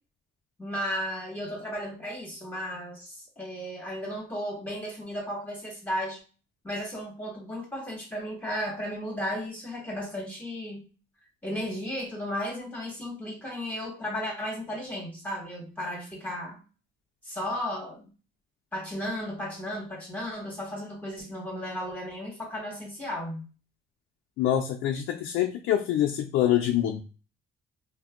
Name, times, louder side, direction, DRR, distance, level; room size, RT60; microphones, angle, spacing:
voice 1, 0.6-6.2 6.6-10.8 11.4-16.6 17.2-18.1 18.7-23.4, equal, 10° left, -2 dB, 1.4 m, -34 dB
voice 2, 24.4-27.0, left 11 dB, 90° left, 3 dB, 0.4 m, -25 dB
2.5 x 2.2 x 3.6 m, 0.34 s
cardioid pair, 90°, 20 cm